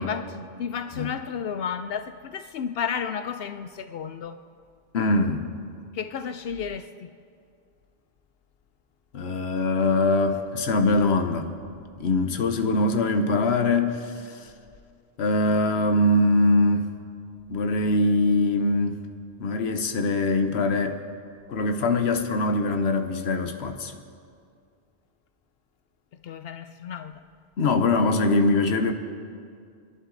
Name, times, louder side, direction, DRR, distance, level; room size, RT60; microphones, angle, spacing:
voice 1, 0.0-4.4 5.9-7.1 26.2-27.2, left 7 dB, 70° left, 9 dB, 0.8 m, -32 dB
voice 2, 4.9-5.5 9.1-11.5 12.0-14.5 15.2-16.9 17.5-19.0 19.4-21.0 21.5-24.0 27.6-28.9, left 2 dB, 90° left, 7 dB, 1.1 m, -23 dB
26.5 x 11.5 x 3.9 m, 2.3 s
omnidirectional pair, 1.0 m